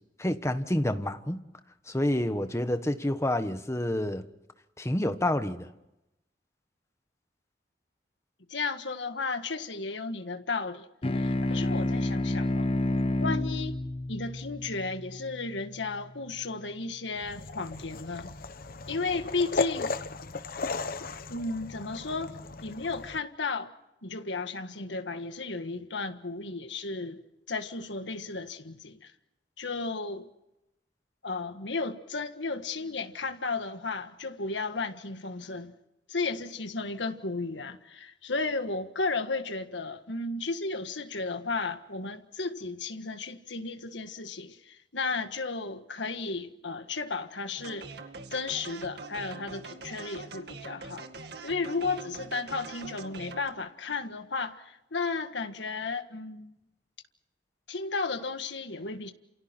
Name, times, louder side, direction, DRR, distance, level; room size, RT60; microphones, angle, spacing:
voice 1, 0.2-1.4 1.9-4.3 4.8-5.7, left 1 dB, 15° left, 1.4 m, -28 dB
voice 2, 8.5-10.9 11.1-12.7 13.2-13.8 14.1-18.3 18.9-19.9 21.3-22.3 22.6-23.7 24.0-27.2 27.5-29.1 29.6-30.3 31.2-35.7 36.1-47.9 48.3-51.1 51.4-56.5 57.7-59.1, left 3 dB, 85° left, 1.6 m, -34 dB
sound 1, 11.0-15.9, left 1 dB, 30° left, 0.8 m, -30 dB
sound 2, 17.2-23.2, left 4 dB, 55° left, 1.0 m, -36 dB
sound 3, 47.6-53.5, right 3 dB, 65° right, 2.1 m, -43 dB
29.5 x 28.5 x 4.5 m
head